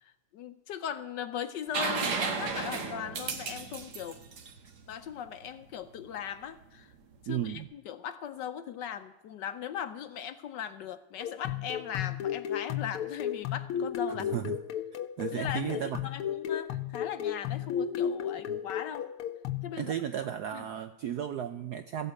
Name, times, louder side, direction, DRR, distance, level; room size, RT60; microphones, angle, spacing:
voice 1, 0.0-4.2 4.9-6.9 7.2-14.4 15.3-19.1 19.6-19.9 20.5-20.6, left 9 dB, 70° left, 11 dB, 1.1 m, -39 dB
sound 1, 1.7-5.4 7.3-7.4, right 5 dB, 55° right, 1.8 m, -34 dB
voice 2, 7.3-7.7 14.3-14.6 15.2-16.0 18.5-18.6 19.8-22.1, right 10 dB, 75° right, 10 dB, 0.9 m, -34 dB
sound 2, 11.2-19.7, left 9 dB, 85° left, 1.6 m, -34 dB
15.0 x 8.2 x 8.1 m, 0.94 s
omnidirectional pair, 2.3 m